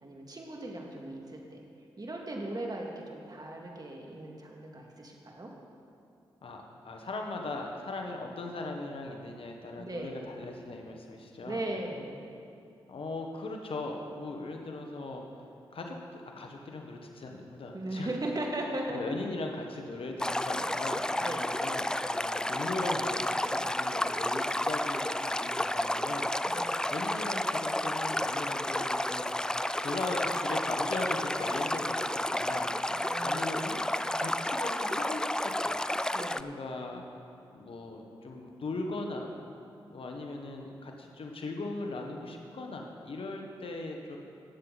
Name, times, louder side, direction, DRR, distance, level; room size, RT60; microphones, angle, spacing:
voice 1, 0.0-1.6 2.0-5.5 9.8-10.2 11.4-12.2 17.7-19.0 21.2-21.4 26.5-26.7 32.9-33.7 36.1-36.4, right 1 dB, 40° right, -1 dB, 2.3 m, -38 dB
voice 2, 6.4-11.6 12.9-15.2 15.7-18.1 18.9-29.4 29.8-32.7 33.2-33.8 34.1-35.8 36.3-37.0 37.5-39.3 39.9-44.2, left 2 dB, 65° left, 2 dB, 1.4 m, -39 dB
Stream, 20.2-36.4, left 1 dB, 5° left, 0.4 m, -31 dB
18.0 x 7.7 x 4.2 m, 2.5 s
supercardioid pair, 40°, 10 cm